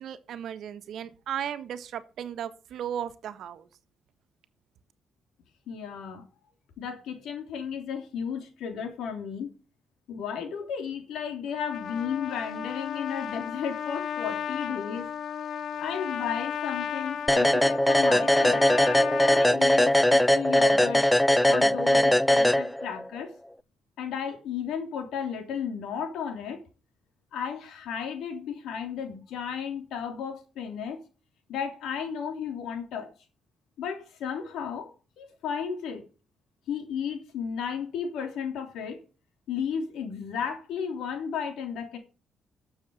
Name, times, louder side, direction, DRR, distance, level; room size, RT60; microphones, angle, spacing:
voice 1, 0.0-3.7, right 9 dB, 70° right, 1.4 m, -35 dB
voice 2, 5.7-6.3 6.8-9.5 10.1-15.1 15.8-18.7 19.3-21.0 21.4-23.3 24.0-26.6 27.3-31.0 31.5-33.1 33.8-36.0 36.7-39.0 39.5-42.0, left 7 dB, 80° left, 3.5 m, -34 dB
Trumpet, 11.5-19.5, left 8 dB, 60° left, 0.7 m, -34 dB
sound 1, 17.3-23.1, left 1 dB, 5° left, 0.5 m, -21 dB
13.0 x 7.1 x 5.5 m
cardioid pair, 90°, 0 cm